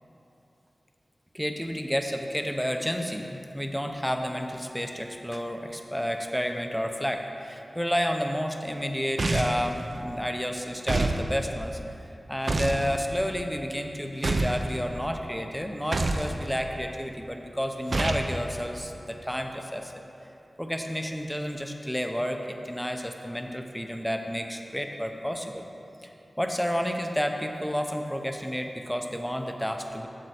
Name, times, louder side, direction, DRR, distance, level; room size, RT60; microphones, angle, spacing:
voice 1, 1.3-11.8 12.3-19.9 20.6-25.6 26.0-30.1, equal, 5° left, 4 dB, 0.6 m, -31 dB
sound 1, 9.2-9.7 10.9-11.2 12.5-12.8 14.2-14.6 15.9-16.3 17.9-18.3, right 2 dB, 65° right, 0.5 m, -26 dB
7.7 x 7.4 x 4.3 m, 2.9 s
wide cardioid pair, 70°, 0 cm